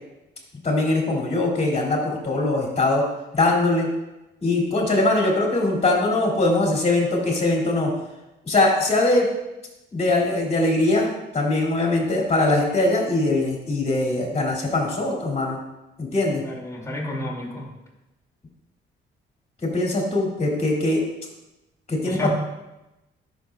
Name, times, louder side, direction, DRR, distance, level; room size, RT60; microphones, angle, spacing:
voice 1, 0.6-3.0 3.3-3.9 4.4-7.9 8.4-9.3 9.9-15.6 16.0-16.4 19.6-21.0 21.9-22.3, left 2 dB, 30° left, -2 dB, 2.7 m, -21 dB
voice 2, 16.4-17.7 22.1-22.3, left 1 dB, 15° left, -4 dB, 2.5 m, -30 dB
11.0 x 6.4 x 2.4 m, 0.96 s
cardioid pair, 90°, 20 cm